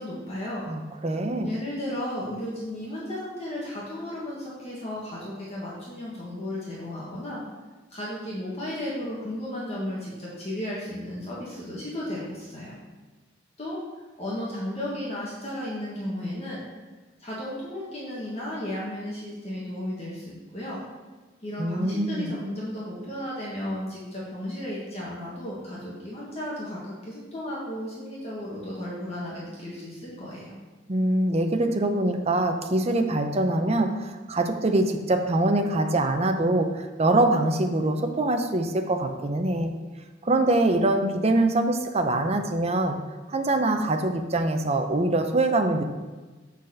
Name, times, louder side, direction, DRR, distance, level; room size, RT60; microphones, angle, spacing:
voice 1, 0.0-0.7 1.4-7.4 7.9-12.8 13.6-13.8 14.2-16.6 17.2-20.8 21.4-30.6, left 1 dB, 35° left, -6 dB, 1.5 m, -34 dB
voice 2, 0.7-1.5 21.6-22.3 30.9-39.7 40.2-43.0 43.3-45.8, right 2 dB, 35° right, 5 dB, 0.7 m, -24 dB
6.3 x 4.1 x 6.4 m, 1.3 s
head